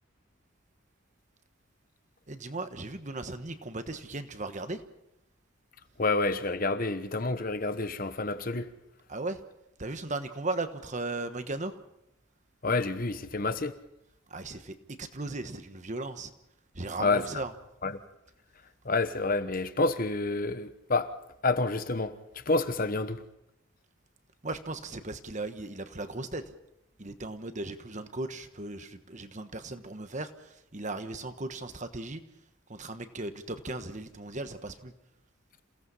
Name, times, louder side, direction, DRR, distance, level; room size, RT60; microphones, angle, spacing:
voice 1, 2.3-4.8 9.1-9.4 9.8-11.8 14.3-16.3 16.7-17.5 24.4-26.5 27.0-32.3 32.7-34.9, right 2 dB, 35° right, 1.3 m, -37 dB
voice 2, 6.0-8.7 12.6-13.7 17.0-17.2 17.8-17.9 18.8-21.1 21.4-22.1 22.5-23.2, left 3 dB, 45° left, 1.1 m, -28 dB
28.0 x 17.0 x 5.6 m
head